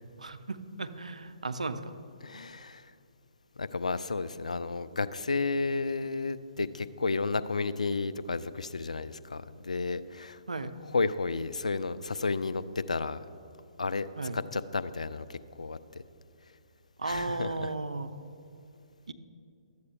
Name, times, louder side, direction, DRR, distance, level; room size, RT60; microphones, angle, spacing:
voice 1, 0.2-1.9 10.5-10.8 14.2-14.4 17.0-18.1 19.1-19.2, right 3 dB, 75° right, 11 dB, 0.5 m, -35 dB
voice 2, 2.2-2.9 3.6-13.2 13.8-14.1 14.3-16.0 17.0-17.7, left 4 dB, 75° left, 14 dB, 0.3 m, -32 dB
12.0 x 7.9 x 3.5 m, 2.5 s
figure-of-eight pair, 130°, 4 cm